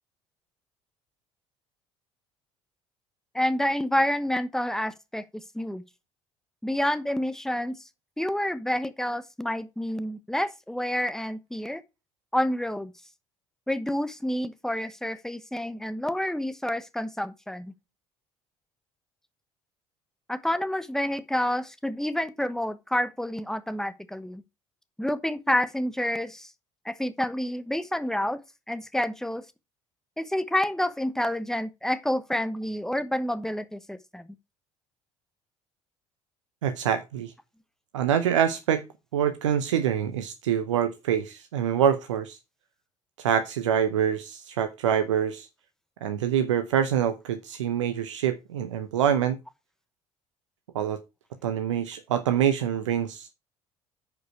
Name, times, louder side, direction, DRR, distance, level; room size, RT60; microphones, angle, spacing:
voice 1, 3.3-5.2 5.5-5.8 6.6-7.7 8.2-11.8 12.3-12.9 13.7-17.7 20.3-24.4 25.0-26.5 26.8-28.4 28.7-29.4 30.2-34.3, left 1 dB, 5° left, 1.0 m, -28 dB
voice 2, 36.6-37.3 37.9-38.9 39.1-42.4 43.2-45.5 46.0-49.4 50.7-51.0 51.4-53.3, right 9 dB, 80° right, 0.7 m, -25 dB
9.3 x 5.3 x 4.5 m
hypercardioid pair, 55°, 15 cm